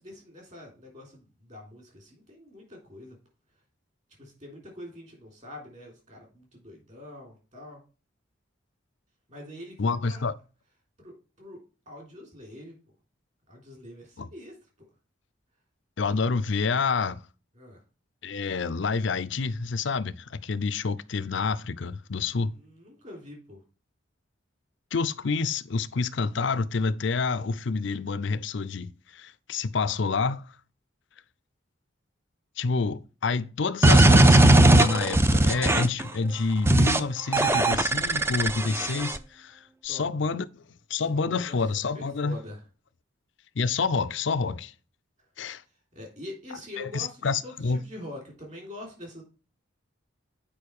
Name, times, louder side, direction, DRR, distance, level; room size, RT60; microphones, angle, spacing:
voice 1, 0.0-3.1 4.2-7.8 9.3-10.3 11.0-11.6 11.8-12.7 13.5-14.5 17.5-17.8 22.3-23.6 39.9-40.1 41.1-41.6 41.9-42.6 45.9-49.2, left 1 dB, 35° right, 3.5 m, -44 dB
voice 2, 9.8-10.3 14.2-14.3 16.0-17.2 18.2-22.5 24.9-30.5 32.6-40.5 40.9-42.4 43.6-44.7 45.4-45.6 46.8-47.8, left 4 dB, 65° left, 0.5 m, -28 dB
sound 1, 33.8-36.0 36.7-37.0 37.3-39.2, right 1 dB, 10° right, 0.4 m, -18 dB
8.8 x 5.1 x 4.7 m
head